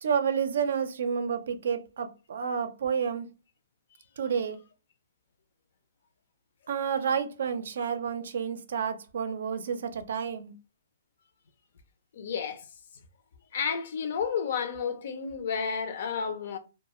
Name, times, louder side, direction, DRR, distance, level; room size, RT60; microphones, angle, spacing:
voice 1, 0.0-3.3 4.2-4.6 6.7-10.5, right 7 dB, 70° right, 0.4 m, -30 dB
voice 2, 12.1-12.7 13.5-16.6, left 6 dB, 60° left, 0.5 m, -31 dB
2.3 x 2.3 x 2.9 m
hypercardioid pair, 155°, 0 cm